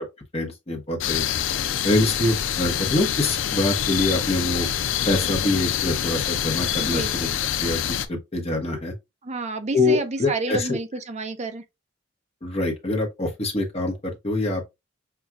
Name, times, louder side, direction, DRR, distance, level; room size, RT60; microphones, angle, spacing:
voice 1, 0.3-1.2 1.8-4.7 5.0-7.3 7.6-8.9 9.7-10.8 12.4-14.6, left 2 dB, 35° left, 1.0 m, -25 dB
Wind in the forest and a grumpy bird, 1.0-8.1, left 9 dB, 90° left, 0.4 m, -26 dB
voice 2, 6.8-7.3 9.2-11.6, right 3 dB, 35° right, 0.6 m, -30 dB
5.8 x 2.3 x 2.4 m
head